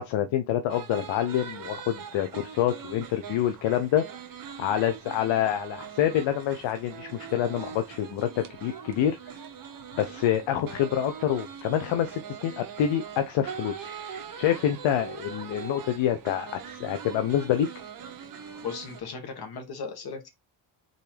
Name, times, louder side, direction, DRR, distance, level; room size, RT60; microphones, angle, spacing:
voice 1, 0.0-4.0 4.6-9.2 10.0-13.9 14.4-17.7, left 10 dB, 75° left, 0.7 m, -27 dB
sound 1, 0.7-19.0, right 7 dB, 45° right, 0.9 m, -42 dB
voice 2, 18.6-20.3, left 5 dB, 55° left, 1.7 m, -36 dB
3.9 x 3.8 x 3.3 m
cardioid pair, 85°, 45 cm